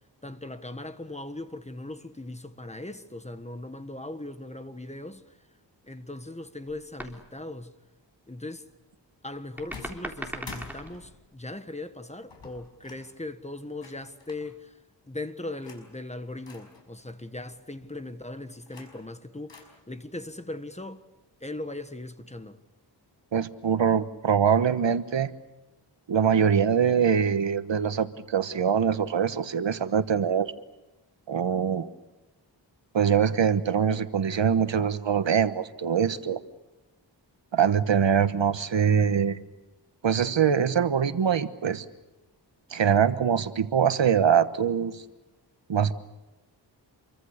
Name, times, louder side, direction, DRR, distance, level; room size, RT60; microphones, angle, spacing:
voice 1, 0.2-5.4 5.8-7.7 8.3-8.7 9.2-14.8 15.1-21.0 21.4-22.6, left 2 dB, 15° left, 1.5 m, -39 dB
sound 1, 6.7-7.3 9.6-11.2 12.3-12.5, right 1 dB, 5° right, 3.6 m, -39 dB
sound 2, 9.7-11.4 12.3-13.1 13.8-14.5 15.5-15.9 16.5-16.8 18.4-19.1 19.5-19.6, left 4 dB, 80° left, 5.5 m, -47 dB
voice 2, 23.3-25.3 26.1-30.5 31.3-31.9 32.9-36.4 37.5-39.4 40.0-41.8 42.7-45.0 45.7-45.9, right 7 dB, 85° right, 1.3 m, -23 dB
27.5 x 24.0 x 6.6 m
wide cardioid pair, 85°, 43 cm